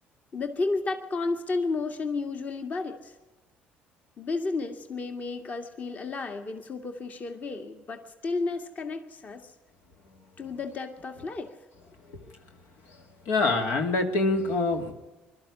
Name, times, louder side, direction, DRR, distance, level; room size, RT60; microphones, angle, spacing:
voice 1, 0.3-3.1 4.2-9.5 10.4-11.5, left 3 dB, 40° left, 6 dB, 2.0 m, -32 dB
voice 2, 13.3-14.9, left 3 dB, 80° left, 4 dB, 2.6 m, -25 dB
22.0 x 13.0 x 9.8 m, 1.2 s
cardioid pair, 95°, 4 cm